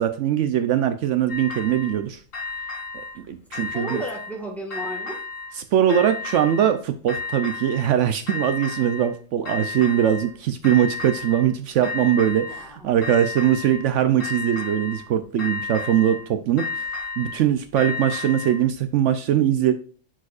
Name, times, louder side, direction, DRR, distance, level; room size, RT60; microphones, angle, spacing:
voice 1, 0.0-2.2 3.2-4.0 5.7-16.9 17.2-19.7, right 10 dB, 70° right, 9 dB, 0.9 m, -21 dB
sound 1, 1.3-2.0 2.3-3.2 3.5-4.4 4.7-5.6 5.9-6.8 7.1-7.9 8.3-9.1 9.5-10.3 10.6-11.5 11.8-12.7 13.0-13.9 14.2-15.1 15.4-16.3 16.6-18.6, left 3 dB, 80° left, 2.0 m, -32 dB
voice 2, 3.7-5.2 12.4-12.9, right 1 dB, ahead, 1 dB, 1.5 m, -34 dB
10.0 x 4.9 x 2.4 m, 0.42 s
omnidirectional pair, 1.3 m